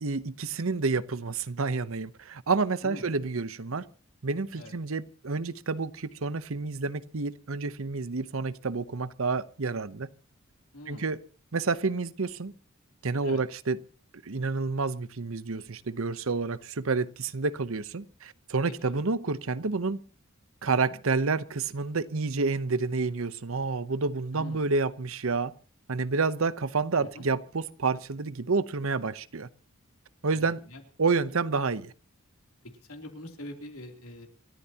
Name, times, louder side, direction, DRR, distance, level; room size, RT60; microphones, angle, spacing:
voice 1, 0.0-3.8 4.2-10.1 10.9-11.2 11.5-12.5 13.0-13.8 14.2-20.0 20.6-25.5 25.9-29.5 30.2-30.6 31.0-31.9, right 4 dB, 75° right, 0.8 m, -29 dB
voice 2, 10.7-11.1 13.2-13.4 18.8-18.9 20.7-21.0 24.3-24.6 27.0-27.2 30.3-30.8 32.9-34.3, left 1 dB, 85° left, 3.2 m, -43 dB
28.0 x 13.5 x 2.9 m
head